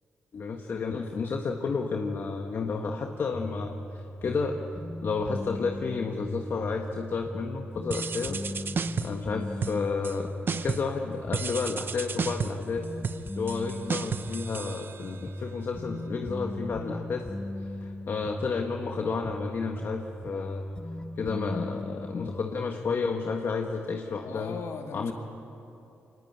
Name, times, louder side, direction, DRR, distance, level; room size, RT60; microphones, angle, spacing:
voice 1, 0.3-4.6 5.0-8.4 9.0-10.3 10.6-12.9 13.4-17.3 17.6-20.6 21.2-24.6 24.9-25.1, left 4 dB, 55° left, 3 dB, 1.5 m, -31 dB
sound 1, 3.3-22.4, left 1 dB, 20° left, 0.8 m, -38 dB
sound 2, 7.9-9.3 9.6-10.2 10.5-11.0 11.3-15.3, right 5 dB, 50° right, 0.8 m, -33 dB
voice 2, 24.2-25.1, left 5 dB, 80° left, 4 dB, 2.3 m, -38 dB
23.5 x 19.5 x 9.0 m, 2.9 s
cardioid pair, 70°, 4 cm